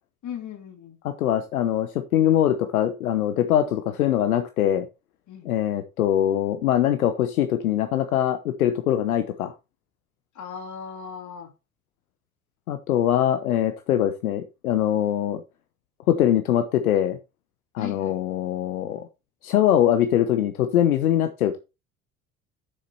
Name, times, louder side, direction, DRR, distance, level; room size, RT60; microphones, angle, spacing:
voice 1, 0.2-1.0 5.3-5.5 10.4-11.5 17.8-18.2, left 7 dB, 40° left, 2.6 m, -37 dB
voice 2, 1.0-4.9 5.4-9.5 12.7-15.4 16.1-17.2 17.7-19.1 19.4-21.6, left 11 dB, 75° left, 1.0 m, -22 dB
7.6 x 6.6 x 4.4 m
figure-of-eight pair, 60°, 43 cm